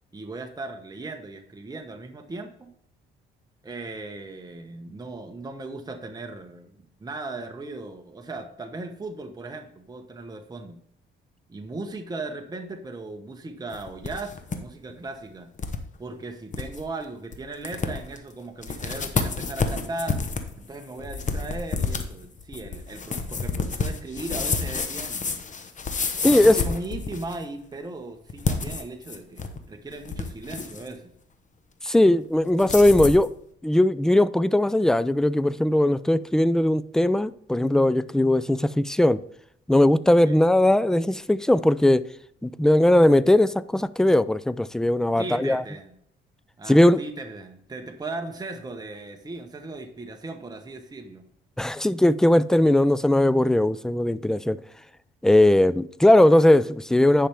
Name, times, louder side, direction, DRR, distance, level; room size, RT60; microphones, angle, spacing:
voice 1, 0.1-2.7 3.6-6.7 7.0-10.8 11.5-15.5 16.0-20.3 20.7-25.4 26.2-31.1 40.2-40.5 45.2-45.9 46.6-51.2, right 2 dB, 20° right, 1.0 m, -37 dB
sound 1, 13.7-14.6 14.9-15.0 15.6-15.8 16.2-16.3 16.5-16.8 17.3-17.4 17.6-18.2 18.6-27.4 28.3-29.6 29.9-30.9 32.6-33.3, left 4 dB, 40° left, 1.0 m, -29 dB
voice 2, 26.2-26.6 31.8-33.3 33.6-39.2 39.7-42.0 42.4-45.6 46.7-47.0 51.6-54.6 55.2-57.3, left 1 dB, 5° left, 0.3 m, -19 dB
10.0 x 5.7 x 3.5 m
cardioid pair, 90°, 20 cm